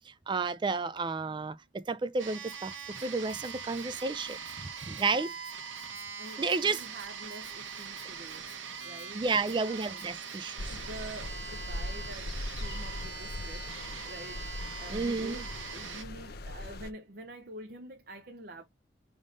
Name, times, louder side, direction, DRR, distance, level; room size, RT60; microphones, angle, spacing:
voice 1, 0.1-5.3 6.4-6.8 9.1-10.8 14.9-15.5, right 4 dB, 25° right, 0.3 m, -32 dB
sound 1, 2.2-16.0, right 6 dB, 80° right, 1.1 m, -42 dB
Rattle (instrument), 2.4-10.4, left 4 dB, 15° left, 1.4 m, -60 dB
voice 2, 5.0-5.3 6.2-8.5 8.8-9.2 9.6-10.1 10.7-18.6, right 1 dB, 50° right, 0.7 m, -47 dB
sound 2, 10.6-16.9, left 2 dB, 55° left, 0.6 m, -40 dB
5.2 x 3.6 x 5.0 m
head